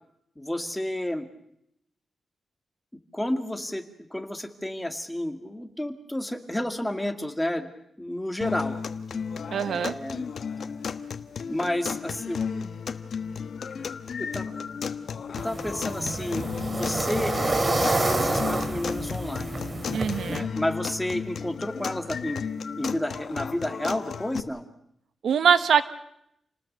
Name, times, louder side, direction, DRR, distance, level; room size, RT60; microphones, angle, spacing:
voice 1, 0.4-1.3 3.1-3.8 4.1-7.7 8.0-8.8 9.7-10.2 11.5-12.4 14.2-14.7 15.4-17.3 17.6-19.6 20.3-22.4 22.8-24.7, left 1 dB, 5° left, 6 dB, 2.1 m, -31 dB
sound 1, 8.4-24.4, left 6 dB, 60° left, 1.2 m, -34 dB
voice 2, 9.5-10.0 19.9-20.5 25.2-25.8, right 7 dB, 80° right, 12 dB, 1.2 m, -22 dB
sound 2, 15.4-20.4, right 2 dB, 25° right, 2.6 m, -28 dB
29.0 x 19.5 x 6.7 m, 0.76 s
wide cardioid pair, 135°, 0 cm